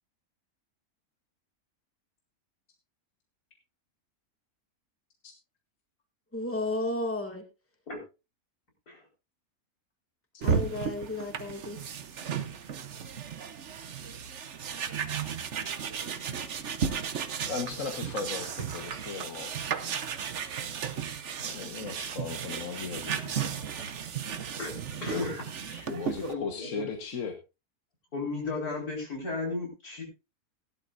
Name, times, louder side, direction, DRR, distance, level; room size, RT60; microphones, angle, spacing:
voice 1, 6.3-7.4 10.4-11.8, left 2 dB, 10° left, 3 dB, 2.0 m, -33 dB
sound 1, 10.4-26.3, right 7 dB, 55° right, 1.2 m, -34 dB
voice 2, 17.4-19.5 21.4-23.4 25.9-27.3, left 5 dB, 60° left, 3 dB, 1.7 m, -37 dB
voice 3, 24.6-26.8 28.1-30.0, left 3 dB, 90° left, 0 dB, 5.2 m, -35 dB
17.0 x 11.5 x 2.6 m, 0.28 s
omnidirectional pair, 1.6 m